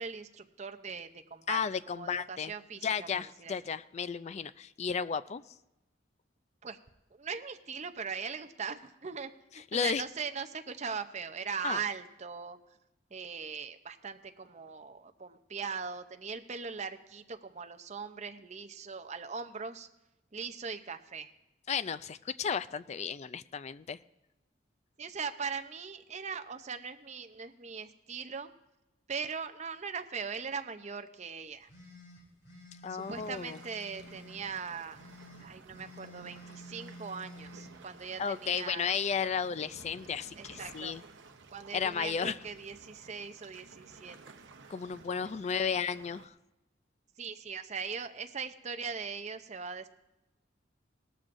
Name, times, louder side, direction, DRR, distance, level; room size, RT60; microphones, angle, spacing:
voice 1, 0.0-1.6 1.9-3.5 6.6-6.8 7.1-12.6 13.1-19.9 20.3-21.3 25.0-28.5 29.1-31.7 32.9-35.0 35.4-38.9 40.4-40.9 41.5-44.3 45.2-45.5 47.2-49.9, right 5 dB, 40° right, 9 dB, 0.6 m, -40 dB
voice 2, 1.5-2.5 2.8-5.4 9.7-10.0 11.6-11.8 21.7-24.0 32.8-33.6 38.2-41.0 41.7-42.4 44.7-46.3, left 6 dB, 35° left, 15 dB, 0.3 m, -33 dB
sound 1, 31.7-34.5 34.9-37.7, equal, 70° left, 4.4 m, -51 dB
sound 2, 33.0-46.3, right 3 dB, 80° right, 0.9 m, -54 dB
19.0 x 13.5 x 2.6 m, 0.97 s
head